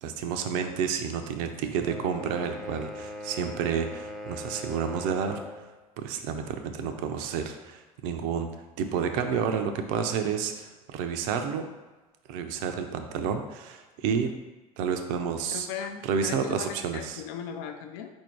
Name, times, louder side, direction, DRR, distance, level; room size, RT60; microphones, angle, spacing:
voice 1, 0.0-5.4 6.0-8.5 8.8-11.7 12.3-14.3 14.8-15.7 16.0-17.2, right 7 dB, 65° right, 6 dB, 0.5 m, -30 dB
sound 1, 1.8-5.7, equal, ahead, 0.6 m, -40 dB
voice 2, 15.5-18.1, left 8 dB, 65° left, 5 dB, 0.5 m, -37 dB
4.3 x 2.7 x 4.4 m, 1.2 s
hypercardioid pair, 70°, 19 cm